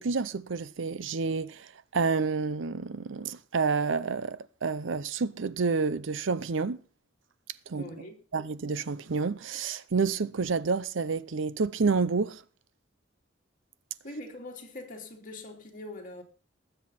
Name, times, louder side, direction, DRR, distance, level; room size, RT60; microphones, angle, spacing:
voice 1, 0.0-6.8 7.7-7.8 8.3-12.4, right 4 dB, 70° right, 0.6 m, -29 dB
voice 2, 7.7-8.2 14.0-16.2, left 1 dB, 45° left, 3.0 m, -42 dB
19.5 x 8.0 x 4.2 m
head